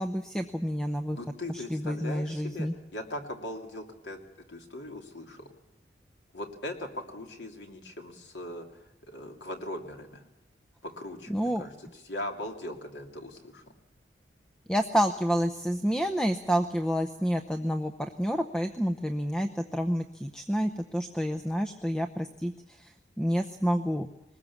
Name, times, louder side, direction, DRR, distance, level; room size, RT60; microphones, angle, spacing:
voice 1, 0.0-1.2 1.5-2.7 11.3-11.6 14.7-22.9 23.2-24.1, equal, 5° left, 8 dB, 0.7 m, -29 dB
voice 2, 1.1-4.2 4.5-5.5 6.3-8.7 9.0-10.2 10.8-13.7, left 1 dB, 85° left, 3 dB, 2.8 m, -40 dB
22.0 x 20.0 x 7.2 m, 0.96 s
head